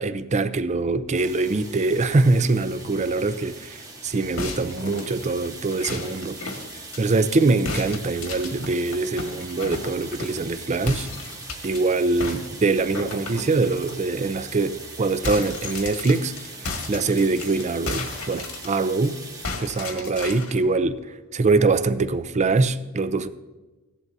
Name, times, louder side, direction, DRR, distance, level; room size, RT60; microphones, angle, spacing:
voice 1, 0.0-6.4 7.0-11.1 11.6-16.3 16.9-19.2 19.6-21.0 21.3-23.3, right 3 dB, 35° right, 0.5 m, -23 dB
sound 1, 1.1-19.5, right 3 dB, 15° right, 1.1 m, -41 dB
sound 2, 4.4-7.4 7.7-10.5 10.9-11.8 12.2-14.0 14.4-14.5 14.8-19.1 19.4-20.6, left 3 dB, 80° left, 1.6 m, -34 dB
15.5 x 11.0 x 2.7 m
head